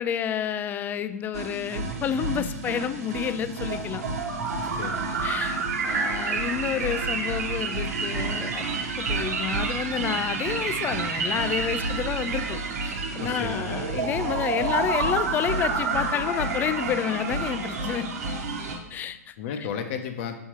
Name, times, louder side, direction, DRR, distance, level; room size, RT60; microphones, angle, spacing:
voice 1, 0.0-4.1 5.2-5.6 5.8-8.6 9.0-18.1 18.9-19.3, left 8 dB, 20° left, 12 dB, 0.3 m, -29 dB
sound 1, 1.3-18.8, right 3 dB, 70° right, 1.1 m, -29 dB
voice 2, 4.6-5.1 13.2-13.7 19.4-20.4, left 7 dB, 50° left, 7 dB, 0.8 m, -33 dB
6.4 x 5.3 x 3.1 m, 0.97 s
hypercardioid pair, 115°, 9 cm